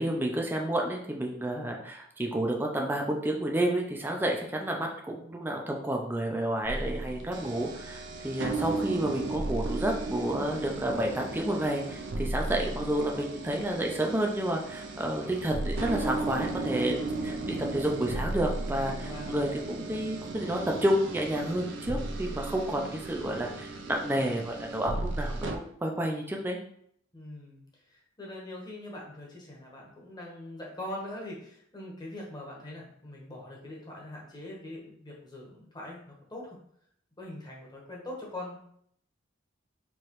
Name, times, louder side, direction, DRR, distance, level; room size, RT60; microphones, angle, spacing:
voice 1, 0.0-17.0 17.2-26.6, right 1 dB, 10° right, 0 dB, 0.5 m, -30 dB
sound 1, 6.6-25.6, right 2 dB, 65° right, 0.5 m, -35 dB
voice 2, 19.0-19.5 27.1-27.6 28.2-36.5 37.2-38.6, left 1 dB, 20° left, -3 dB, 1.1 m, -42 dB
4.7 x 3.0 x 3.0 m, 0.67 s
head